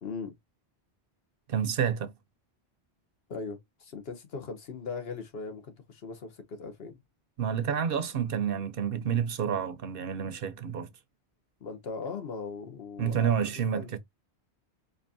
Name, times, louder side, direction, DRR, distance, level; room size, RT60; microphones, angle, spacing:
voice 1, 0.0-0.3 3.3-7.0 11.6-13.4 13.7-13.9, left 4 dB, 70° left, 1.2 m, -39 dB
voice 2, 1.5-2.1 7.4-10.9 13.0-14.0, right 8 dB, 65° right, 0.8 m, -29 dB
4.4 x 2.8 x 2.6 m
omnidirectional pair, 1.1 m